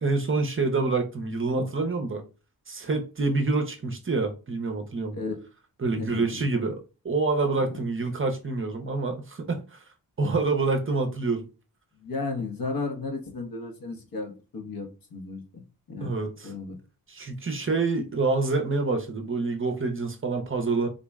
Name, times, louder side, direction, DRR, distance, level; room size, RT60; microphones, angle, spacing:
voice 1, 0.0-2.2 2.7-5.2 5.8-6.8 7.0-9.8 10.2-11.5 16.0-16.5 17.1-20.9, right 3 dB, 35° right, 0.5 m, -27 dB
voice 2, 6.0-6.4 7.7-7.8 12.0-15.6 15.9-16.1 16.4-16.8, left 3 dB, 60° left, 0.9 m, -34 dB
3.8 x 2.0 x 3.4 m
wide cardioid pair, 135°, 38 cm